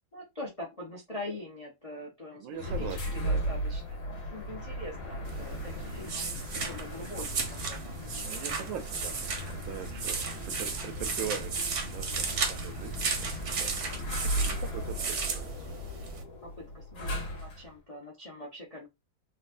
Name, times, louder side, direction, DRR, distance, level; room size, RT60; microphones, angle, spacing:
voice 1, 0.1-2.5 2.8-8.3 13.6-14.1 16.0-18.9, left 1 dB, 60° left, 0.3 m, -44 dB
voice 2, 2.3-3.6 8.2-13.7 14.0-15.5, right 8 dB, 80° right, 1.3 m, -42 dB
sound 1, 2.5-17.7, equal, 85° left, 1.9 m, -37 dB
sound 2, 5.2-16.2, right 5 dB, 60° right, 0.8 m, -35 dB
4.0 x 2.2 x 2.5 m
omnidirectional pair, 2.1 m